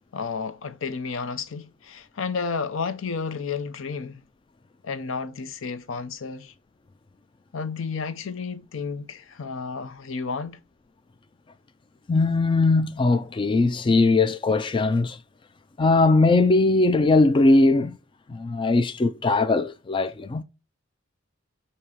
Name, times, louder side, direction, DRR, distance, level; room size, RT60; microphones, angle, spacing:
voice 1, 0.1-4.2 4.8-6.5 7.5-10.6, left 5 dB, 70° left, 0.5 m, -32 dB
voice 2, 12.1-15.2 15.8-18.0 18.3-20.4, left 3 dB, 25° left, 0.3 m, -20 dB
7.0 x 2.8 x 4.7 m
head